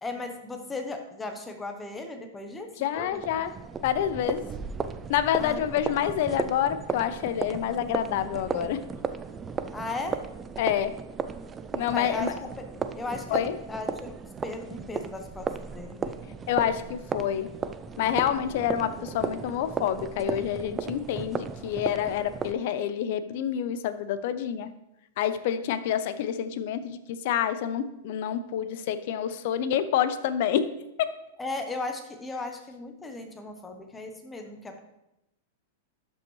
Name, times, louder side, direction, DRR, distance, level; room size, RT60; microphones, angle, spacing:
voice 1, 0.0-3.2 5.4-5.8 9.7-10.2 11.9-12.3 12.6-12.7 12.9-14.1 14.4-16.2 31.4-34.8, left 2 dB, 10° left, 5 dB, 0.8 m, -36 dB
voice 2, 2.8-3.5 3.8-4.4 5.1-8.8 10.6-10.9 11.7-12.3 13.3-13.6 16.5-17.5 18.0-24.7 25.2-30.7 31.0-31.1, left 10 dB, 55° left, 12 dB, 0.6 m, -28 dB
sound 1, 2.9-22.5, right 5 dB, 15° right, 0.3 m, -35 dB
12.0 x 5.3 x 3.1 m, 0.89 s
supercardioid pair, 150°, 0 cm